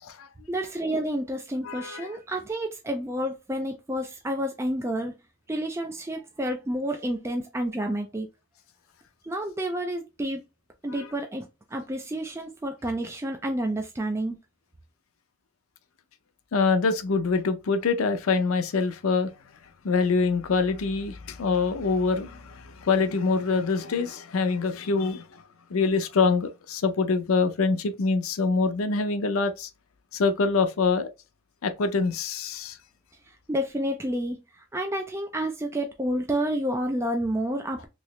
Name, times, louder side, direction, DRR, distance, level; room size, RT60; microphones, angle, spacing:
voice 1, 0.5-5.1 5.5-8.3 9.2-10.4 10.8-14.4 33.3-37.9, right 1 dB, 15° right, 0.4 m, -30 dB
voice 2, 1.6-2.2 10.9-11.1 16.5-19.3 19.8-25.4 25.7-29.7 30.1-31.1 31.6-32.8, left 4 dB, 85° left, 0.5 m, -25 dB
3.1 x 2.8 x 3.0 m
head